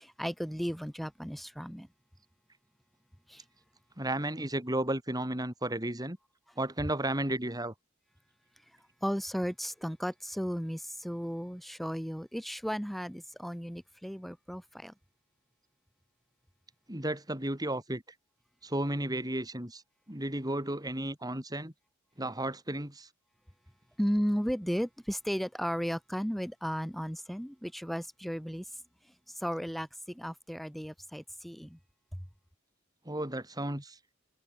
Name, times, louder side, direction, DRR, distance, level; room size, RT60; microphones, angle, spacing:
voice 1, 0.0-1.9 3.3-3.4 9.0-14.9 24.0-28.7 29.4-31.8, equal, ahead, 6.2 m, -34 dB
voice 2, 4.0-6.2 6.6-7.7 16.9-18.0 18.6-19.8 20.1-21.7 22.2-23.1 33.1-34.0, right 1 dB, 20° right, 4.4 m, -33 dB
head